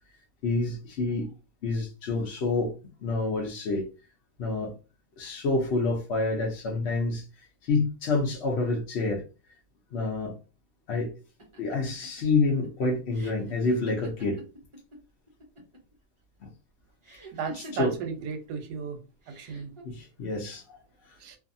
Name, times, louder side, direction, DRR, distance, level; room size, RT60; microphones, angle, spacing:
voice 1, 0.4-1.3 1.6-2.7 3.0-3.9 4.4-4.7 5.2-7.3 7.6-9.2 9.9-10.4 10.9-11.1 11.6-14.4 16.4-16.5 17.5-17.9 19.8-21.1, left 3 dB, 60° left, 0.7 m, -28 dB
sound 1, 11.4-15.0 15.3-15.9 17.0-18.3 19.2-19.8, equal, 40° right, 0.4 m, -45 dB
voice 2, 17.3-19.0 19.4-19.7 21.2-21.4, right 6 dB, 90° right, 1.2 m, -35 dB
2.6 x 2.5 x 2.5 m
omnidirectional pair, 1.7 m